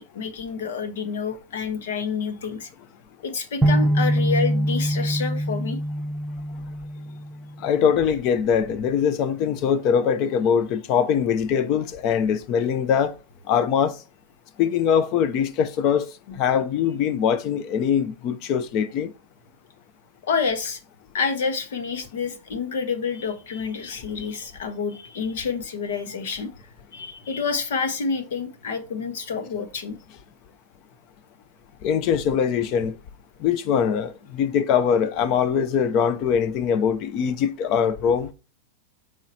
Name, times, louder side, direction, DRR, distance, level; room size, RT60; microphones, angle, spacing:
voice 1, 0.0-2.7 3.2-5.8 16.3-16.4 20.2-20.8 21.1-26.5 26.9-30.0, left 5 dB, 80° left, 1.2 m, -28 dB
sound 1, 3.6-7.6, equal, 15° right, 0.7 m, -24 dB
voice 2, 7.6-13.1 13.5-13.9 14.6-16.1 16.4-19.1 31.8-32.9 33.4-38.3, left 7 dB, 40° left, 0.6 m, -22 dB
7.4 x 4.9 x 2.8 m
supercardioid pair, 150°, 0 cm